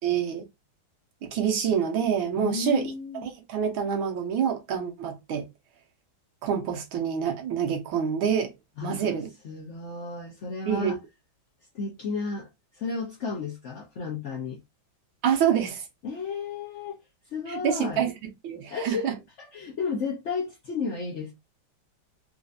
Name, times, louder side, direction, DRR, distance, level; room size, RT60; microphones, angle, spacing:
voice 1, 0.0-0.4 1.2-2.9 3.2-5.5 6.4-8.5 8.8-9.3 10.7-10.9 15.2-15.9 17.5-18.1 18.4-19.2, right 8 dB, 80° right, 1.7 m, -26 dB
voice 2, 2.3-3.3 8.8-9.2 9.4-11.0 11.7-12.5 12.7-14.6 16.0-17.0 17.3-18.0 18.7-19.1 19.4-21.3, left 4 dB, 65° left, 0.7 m, -33 dB
4.3 x 2.6 x 2.5 m
omnidirectional pair, 2.2 m